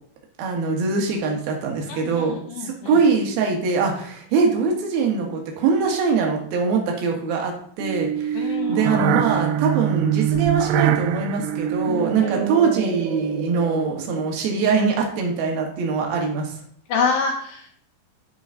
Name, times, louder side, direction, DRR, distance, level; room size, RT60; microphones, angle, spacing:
voice 1, 0.4-16.5, right 4 dB, 65° right, 1 dB, 3.3 m, -23 dB
voice 2, 1.9-3.0 8.3-9.5 12.2-12.7 16.9-17.8, left 5 dB, 85° left, 2 dB, 2.0 m, -28 dB
sound 1, 7.8-14.2, right 11 dB, 85° right, 2.4 m, -24 dB
13.5 x 5.1 x 3.9 m, 0.62 s
omnidirectional pair, 5.1 m